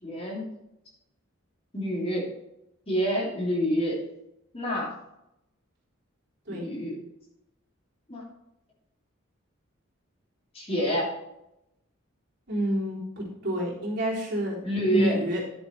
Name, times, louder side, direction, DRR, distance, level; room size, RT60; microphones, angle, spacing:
voice 1, 0.0-0.5 1.7-2.3 2.9-4.0 4.5-4.9 6.5-6.9 8.1-8.2 10.5-11.1 14.6-15.2, equal, 30° left, -4 dB, 3.1 m, -27 dB
voice 2, 12.5-14.6 14.9-15.4, right 1 dB, 50° right, -5 dB, 3.8 m, -28 dB
10.5 x 7.2 x 4.5 m, 0.87 s
head